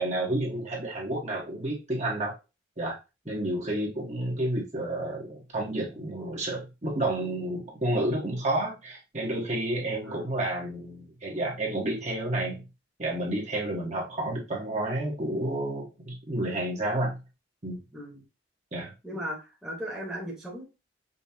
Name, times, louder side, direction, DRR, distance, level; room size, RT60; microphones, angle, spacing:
voice 1, 0.0-2.3 2.8-3.0 3.3-12.6 13.0-17.2 17.6-17.8 18.7-18.9, right 1 dB, 40° right, -3 dB, 1.5 m, -30 dB
voice 2, 3.2-3.6 10.0-10.3 17.9-18.3 19.0-20.6, equal, 5° right, -5 dB, 1.3 m, -37 dB
5.4 x 3.1 x 2.8 m, 0.26 s
head